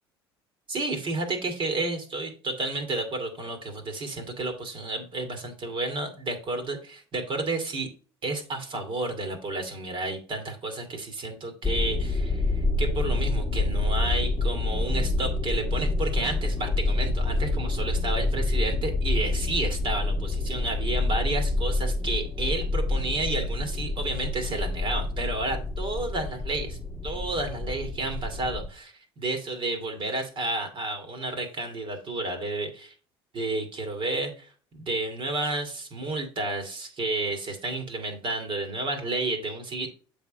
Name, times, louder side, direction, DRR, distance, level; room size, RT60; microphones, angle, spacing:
voice 1, 0.7-7.9 8.2-12.5 12.8-26.8 27.0-32.9 33.3-39.9, right 2 dB, 40° right, 4 dB, 2.0 m, -31 dB
sound 1, 11.6-28.7, left 2 dB, 5° left, 1.3 m, -27 dB
7.7 x 3.6 x 5.0 m, 0.38 s
hypercardioid pair, 70°, 13 cm